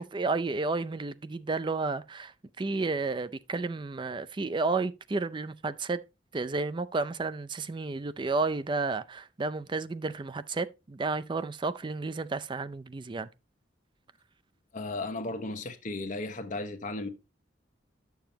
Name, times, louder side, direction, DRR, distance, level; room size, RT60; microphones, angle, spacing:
voice 1, 0.0-6.0 6.3-13.3, right 3 dB, 25° right, 0.4 m, -32 dB
voice 2, 14.7-17.1, left 2 dB, 45° left, 1.0 m, -35 dB
10.5 x 7.0 x 2.8 m
head